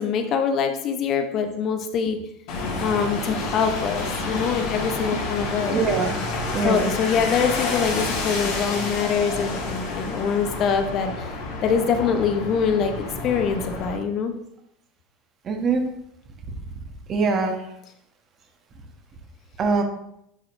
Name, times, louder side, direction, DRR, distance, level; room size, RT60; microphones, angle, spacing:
voice 1, 0.0-2.2 2.8-5.8 6.6-11.2 11.6-13.0 13.2-14.3, left 6 dB, 45° left, 7 dB, 0.7 m, -24 dB
sound 1, 2.5-14.0, left 3 dB, 60° left, 1.9 m, -29 dB
voice 2, 5.7-6.1 6.5-6.9 15.5-15.9 17.1-17.5 19.6-19.8, right 4 dB, 35° right, 4 dB, 1.2 m, -22 dB
9.8 x 4.2 x 2.6 m, 0.77 s
hypercardioid pair, 80°, 0 cm